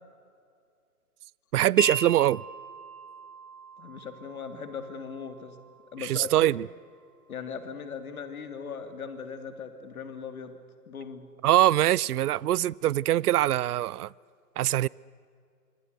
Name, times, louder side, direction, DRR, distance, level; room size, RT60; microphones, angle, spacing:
voice 1, 1.5-2.4 6.0-6.7 11.4-14.1 14.6-14.9, right 13 dB, 70° right, 0.5 m, -23 dB
Wind chime, 1.8-7.9, right 2 dB, 15° right, 0.5 m, -39 dB
voice 2, 3.8-5.6 5.9-6.5 7.3-10.6 10.9-11.3, left 6 dB, 60° left, 2.7 m, -39 dB
26.5 x 24.0 x 6.7 m
hypercardioid pair, 165°, 47 cm